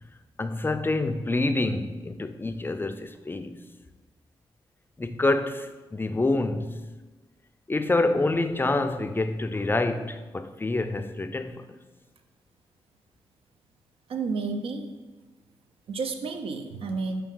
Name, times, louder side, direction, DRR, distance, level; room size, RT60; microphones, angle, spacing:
voice 1, 0.4-3.6 5.0-6.8 7.7-11.6, left 2 dB, 20° left, 0.3 m, -27 dB
voice 2, 14.1-14.9 15.9-17.2, right 4 dB, 70° right, 0.4 m, -31 dB
5.2 x 2.7 x 3.7 m
supercardioid pair, 45°, 10 cm